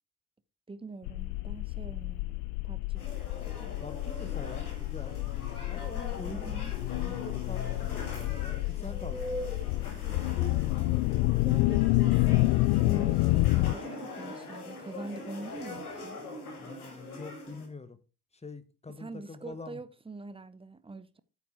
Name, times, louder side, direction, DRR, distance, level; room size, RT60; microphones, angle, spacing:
voice 1, 0.7-3.1 6.3-6.8 11.2-16.2 18.9-21.2, right 3 dB, 10° right, 0.8 m, -44 dB
sound 1, 1.1-13.7, left 21 dB, 55° left, 0.5 m, -29 dB
sound 2, 2.9-17.7, left 2 dB, 80° left, 2.1 m, -42 dB
voice 2, 3.8-5.2 5.7-6.6 6.9-10.1 16.6-18.0 18.3-19.8, left 3 dB, 15° left, 1.3 m, -45 dB
8.9 x 7.2 x 4.8 m
figure-of-eight pair, 45°, 44 cm